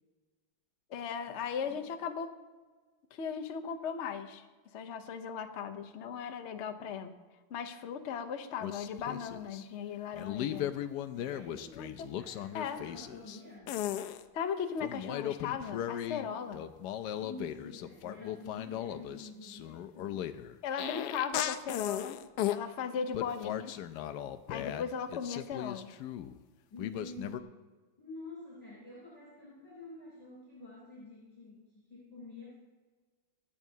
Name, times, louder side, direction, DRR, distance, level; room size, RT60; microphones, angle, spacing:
voice 1, 0.9-2.3 3.1-4.4 4.7-7.1 7.5-10.7 11.7-11.9 12.5-12.8 14.3-16.6 20.6-22.2 22.4-23.7 24.5-25.9, left 7 dB, 50° left, 7 dB, 0.8 m, -37 dB
sound 1, 8.6-9.6 10.1-13.4 13.7-14.2 14.8-16.3 16.5-22.6 23.1-26.4 26.8-27.4, left 11 dB, 75° left, 1.0 m, -37 dB
voice 2, 11.1-11.9 12.2-13.7 16.2-16.5 17.2-20.6 22.8-23.0 26.7-27.6 28.0-32.6, left 2 dB, 20° left, -7 dB, 3.8 m, -49 dB
24.5 x 8.3 x 2.8 m, 1.4 s
omnidirectional pair, 2.1 m